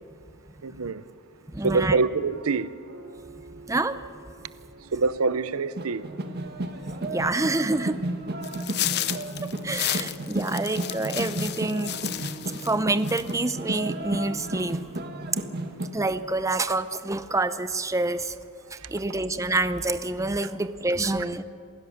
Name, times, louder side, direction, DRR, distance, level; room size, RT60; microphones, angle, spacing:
voice 1, 0.6-1.0 1.6-2.7 4.9-6.2, right 4 dB, 85° right, 0.7 m, -25 dB
voice 2, 1.5-2.0 3.7-4.0 7.0-8.0 9.4-12.3 12.5-14.8 15.9-18.3 18.7-21.4, right 2 dB, 15° right, 0.6 m, -27 dB
sound 1, 1.9-14.4, right 3 dB, 65° right, 3.9 m, -50 dB
sound 2, 5.8-15.9, right 1 dB, 50° right, 1.7 m, -33 dB
sound 3, 8.4-12.7 13.0-13.5, left 12 dB, 50° left, 0.7 m, -32 dB
27.5 x 16.0 x 6.6 m
head